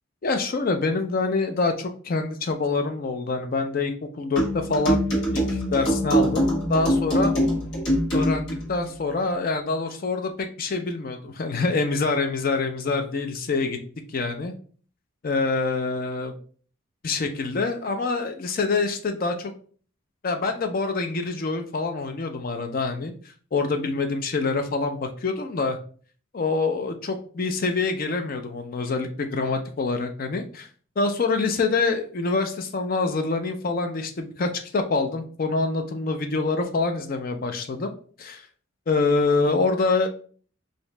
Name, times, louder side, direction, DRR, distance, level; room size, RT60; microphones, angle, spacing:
voice 1, 0.2-5.0 5.3-7.4 8.1-13.8 14.1-14.5 15.2-16.3 17.0-19.5 20.2-23.1 23.5-25.8 26.3-30.7 31.0-37.9 38.2-38.4 38.9-40.1, left 3 dB, 45° left, 6 dB, 0.4 m, -26 dB
sound 1, 4.4-8.6, equal, 65° left, 1.4 m, -23 dB
3.0 x 2.7 x 3.2 m, 0.44 s
head